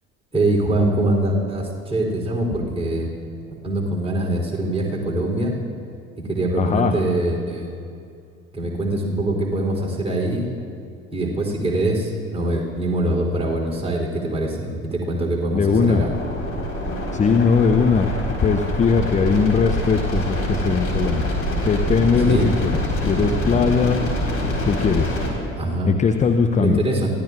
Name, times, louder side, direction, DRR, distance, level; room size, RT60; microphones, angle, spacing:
voice 1, 0.3-3.1 3.6-5.5 6.3-7.7 8.5-10.5 11.1-16.1 22.3-22.6 25.6-25.9 26.6-27.1, right 1 dB, 15° right, -2 dB, 3.4 m, -23 dB
voice 2, 6.6-6.9 15.5-16.0 17.1-18.1 18.4-21.2 21.6-22.7 23.0-24.0 24.6-25.2 25.9-26.8, left 5 dB, 20° left, 6 dB, 0.7 m, -19 dB
sound 1, 15.7-25.3, equal, 35° left, 4.4 m, -25 dB
25.0 x 16.0 x 2.5 m, 2.4 s
figure-of-eight pair, 60°, 39 cm